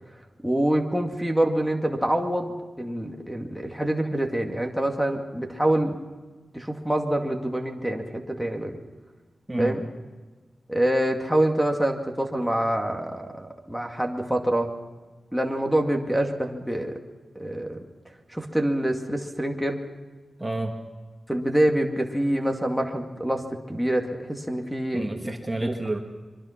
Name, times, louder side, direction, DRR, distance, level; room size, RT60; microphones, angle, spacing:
voice 1, 0.4-6.0 6.5-8.8 9.6-9.8 10.7-14.7 15.3-17.0 17.4-17.8 18.3-19.8 21.3-25.3 25.6-25.7, right 1 dB, ahead, 1 dB, 2.3 m, -26 dB
voice 2, 9.5-9.8 20.4-20.8 24.9-26.0, right 2 dB, 15° right, 3 dB, 2.1 m, -29 dB
24.0 x 24.0 x 5.9 m, 1.3 s
wide cardioid pair, 100°, 0 cm